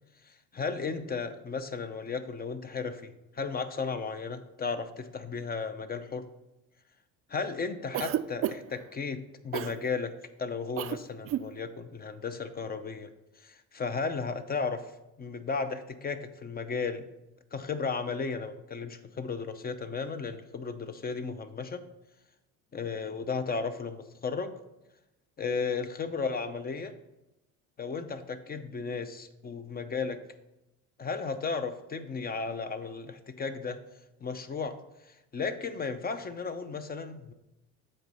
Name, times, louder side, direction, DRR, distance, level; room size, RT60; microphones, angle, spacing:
voice 1, 0.2-6.3 7.3-10.1 10.4-13.1 13.4-14.9 15.2-17.1 17.5-21.8 22.7-24.5 25.4-26.9 27.8-30.2 31.0-33.8 34.2-34.8 35.0-37.3, left 5 dB, 25° left, 10 dB, 0.7 m, -34 dB
Cough, 7.9-8.8 9.5-9.8 10.8-11.0 11.2-11.5, right 12 dB, 40° right, 0.4 m, -31 dB
7.7 x 4.2 x 5.5 m, 0.94 s
supercardioid pair, 90°, 36 cm